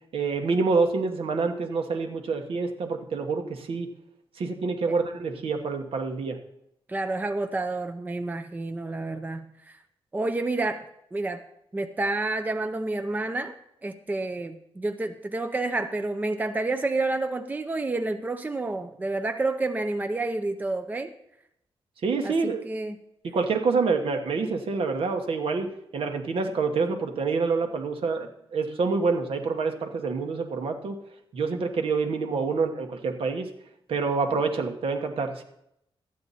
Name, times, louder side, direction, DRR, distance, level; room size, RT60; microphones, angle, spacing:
voice 1, 0.1-3.9 4.4-6.4 22.0-22.6 23.2-31.0 31.3-33.5 33.9-35.4, right 4 dB, 70° right, 5 dB, 1.2 m, -27 dB
voice 2, 6.9-9.8 10.1-10.8 11.1-11.4 11.7-13.6 13.8-21.1 22.2-23.0, right 2 dB, 15° right, 7 dB, 0.5 m, -29 dB
12.5 x 8.7 x 4.1 m, 0.79 s
wide cardioid pair, 120°, 10 cm